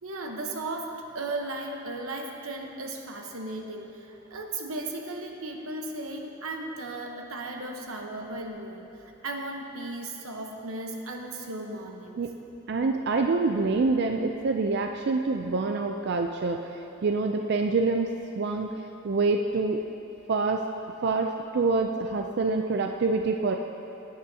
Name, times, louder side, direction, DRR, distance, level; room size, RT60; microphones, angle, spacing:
voice 1, 0.0-8.8 9.2-12.2, right 2 dB, 90° right, 2 dB, 1.0 m, -36 dB
voice 2, 12.7-16.7 17.0-18.1 18.4-18.7 19.0-19.8 20.3-20.6 21.0-23.6, right 3 dB, 50° right, 4 dB, 0.4 m, -26 dB
16.0 x 9.6 x 2.8 m, 2.9 s
head